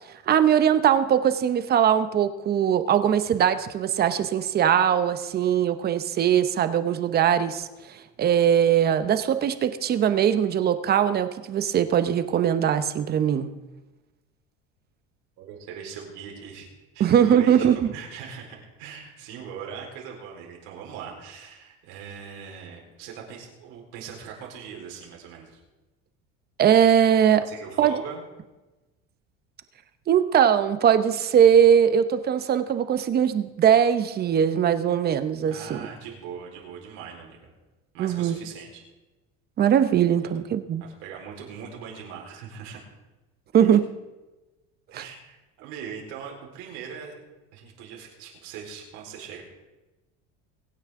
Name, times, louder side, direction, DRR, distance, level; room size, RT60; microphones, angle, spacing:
voice 1, 0.3-7.7 8.2-13.5 17.0-17.8 26.6-27.5 27.8-27.9 30.1-35.8 38.0-38.4 39.6-40.8 43.5-43.8 44.9-45.0, right 9 dB, 30° right, 11 dB, 0.8 m, -21 dB
voice 2, 15.4-16.7 16.9-25.6 27.4-28.2 35.5-37.5 37.9-38.8 40.8-42.8 43.6-43.7 44.9-47.1 47.5-49.4, right 7 dB, 75° right, -1 dB, 4.3 m, -40 dB
23.5 x 9.5 x 3.7 m, 1.1 s
cardioid pair, 145°, 30 cm